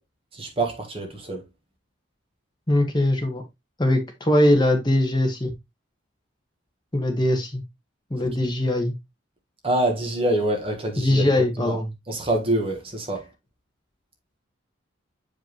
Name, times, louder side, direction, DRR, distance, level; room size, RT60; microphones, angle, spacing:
voice 1, 0.3-1.5 8.2-8.3 9.6-11.8 12.1-13.3, right 1 dB, 25° right, 1.4 m, -26 dB
voice 2, 2.7-3.4 3.8-5.5 6.9-7.6 8.1-8.9 11.0-11.9, left 1 dB, 20° left, 1.3 m, -21 dB
7.4 x 5.1 x 3.0 m
head